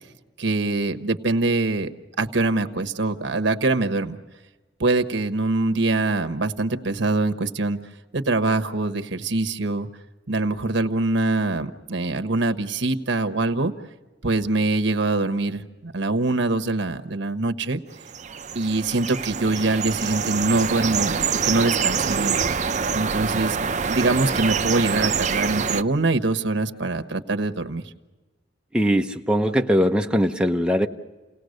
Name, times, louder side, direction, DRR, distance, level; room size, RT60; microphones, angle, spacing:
voice 1, 0.4-1.9 2.2-4.2 4.8-7.8 8.1-9.9 10.3-13.7 14.2-17.8 18.5-22.4 22.9-23.6 23.9-27.8, right 2 dB, 75° right, 8 dB, 1.2 m, -23 dB
sound 1, 18.0-25.8, right 6 dB, 40° right, 0.6 m, -25 dB
voice 2, 28.7-30.9, equal, 5° right, 4 dB, 0.9 m, -21 dB
29.5 x 18.5 x 6.6 m, 1.2 s
head